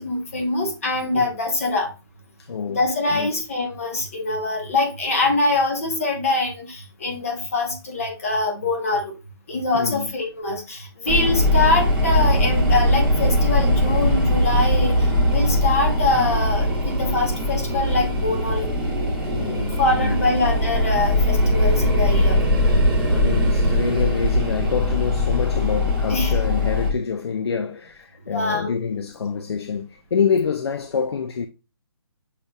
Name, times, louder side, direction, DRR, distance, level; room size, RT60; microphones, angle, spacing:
voice 1, 0.0-1.9 2.7-9.2 9.5-18.7 19.8-22.4 26.1-26.4 28.3-28.7, left 2 dB, 35° left, 0.8 m, -24 dB
voice 2, 2.4-3.3 9.7-10.1 19.3-20.4 23.1-31.5, left 6 dB, 70° left, 0.4 m, -27 dB
sound 1, 11.1-26.9, left 1 dB, 5° right, 1.0 m, -20 dB
6.6 x 2.8 x 2.3 m
hypercardioid pair, 170°, 14 cm